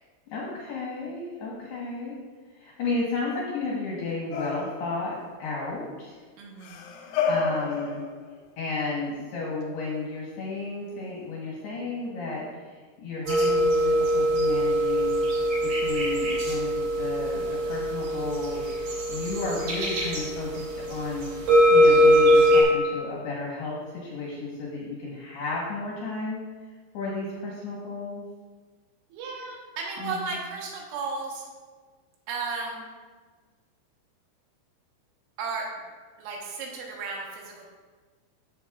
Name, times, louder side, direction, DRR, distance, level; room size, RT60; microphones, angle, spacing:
voice 1, 0.3-2.2 2.5-6.2 7.3-8.0 8.6-15.1 15.6-26.4 26.9-28.2 30.0-30.3, left 3 dB, 70° left, -4 dB, 2.5 m, -33 dB
sound 1, 4.3-5.1 6.6-8.5 9.9-10.0, left 5 dB, 90° left, 3.5 m, -30 dB
voice 2, 6.4-6.9 29.1-31.5 32.3-32.8 35.4-35.7 36.2-37.7, right 4 dB, 75° right, -1 dB, 3.5 m, -34 dB
sound 2, 13.3-22.6, equal, 50° right, 3.7 m, -22 dB
14.0 x 6.5 x 2.3 m, 1.4 s
omnidirectional pair, 5.9 m